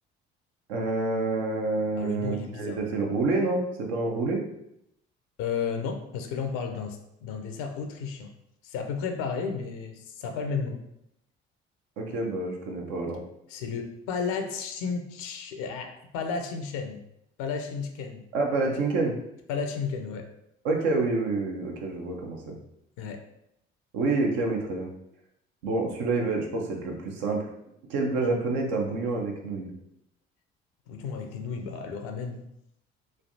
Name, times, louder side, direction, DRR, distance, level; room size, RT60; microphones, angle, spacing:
voice 1, 0.7-4.4 12.0-13.2 18.3-19.2 20.6-22.6 23.9-24.9 25.6-27.5 27.9-29.7, right 3 dB, 75° right, 1 dB, 0.6 m, -28 dB
voice 2, 2.0-2.8 5.4-8.3 8.6-10.8 13.5-17.0 17.4-18.2 19.5-20.3 23.0-23.2 30.9-32.4, left 5 dB, 70° left, 5 dB, 0.5 m, -33 dB
3.2 x 2.4 x 2.6 m, 0.79 s
hypercardioid pair, 50°, 30 cm